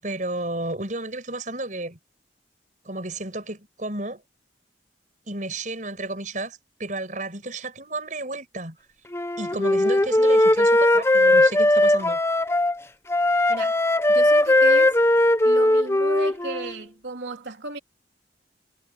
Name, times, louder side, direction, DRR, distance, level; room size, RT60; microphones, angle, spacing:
voice 1, 0.0-2.0 2.8-4.2 5.3-8.8 9.4-12.2, right 2 dB, 45° right, 6.7 m, -32 dB
Wind instrument woodwind instrument, 9.1-12.8 13.1-16.7, left 1 dB, 15° left, 0.7 m, -19 dB
voice 2, 13.5-13.8 14.1-15.0 15.4-17.8, right 2 dB, 90° right, 3.5 m, -34 dB
head